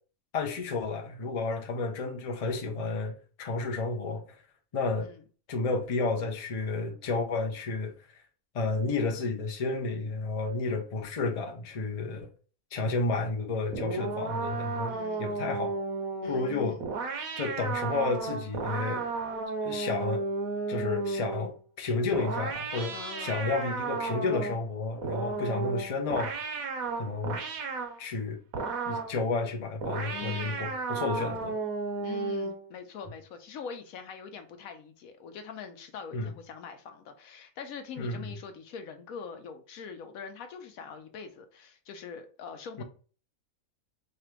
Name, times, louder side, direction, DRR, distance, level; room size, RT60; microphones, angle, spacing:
voice 1, 0.3-4.4 4.7-5.1 5.5-7.9 8.5-12.3 12.7-15.8 16.2-16.8 17.4-19.1 19.6-20.2 20.7-26.3 27.0-27.4 28.0-28.4 28.9-31.6 36.1-36.3 38.0-38.3 42.8-42.9, left 3 dB, 40° left, 0.5 m, -31 dB
sound 1, 13.7-21.6 22.1-24.6 25.0-28.0 28.5-29.2 29.8-32.7, right 4 dB, 75° right, 1.2 m, -33 dB
voice 2, 14.9-15.3 16.2-16.9 22.9-23.5 30.1-30.7 32.0-42.8, left 6 dB, 75° left, 1.1 m, -43 dB
3.3 x 2.5 x 4.4 m
omnidirectional pair, 1.5 m